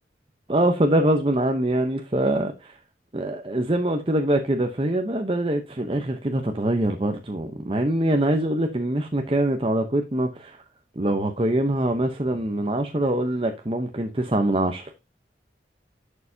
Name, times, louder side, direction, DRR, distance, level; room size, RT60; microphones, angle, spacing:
voice 1, 0.5-2.8 3.1-10.6 11.0-14.9, right 1 dB, 30° right, 0.8 m, -24 dB
11.5 x 6.6 x 2.7 m
head